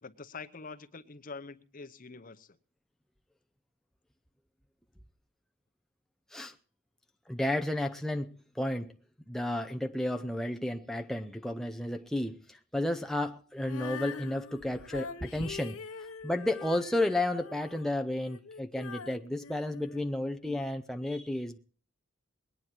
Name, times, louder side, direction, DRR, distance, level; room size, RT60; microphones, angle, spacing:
voice 1, 0.0-2.6, left 4 dB, 40° left, 0.9 m, -45 dB
voice 2, 7.3-9.0 9.3-15.8 16.2-21.6, left 1 dB, ahead, 0.6 m, -32 dB
Female singing, 13.6-20.6, left 5 dB, 80° left, 1.2 m, -44 dB
21.5 x 9.7 x 4.5 m
head